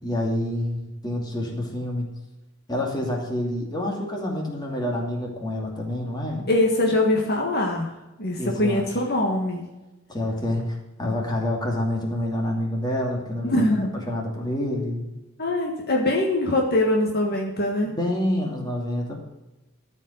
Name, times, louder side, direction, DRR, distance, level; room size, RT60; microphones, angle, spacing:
voice 1, 0.0-2.1 2.7-6.5 8.4-8.9 10.1-15.1 17.8-19.2, left 1 dB, 20° left, -1 dB, 2.6 m, -27 dB
voice 2, 6.5-7.9 8.2-9.7 13.4-13.9 15.4-17.9, left 1 dB, 50° left, 0 dB, 1.7 m, -23 dB
13.5 x 5.4 x 8.0 m, 1.0 s
head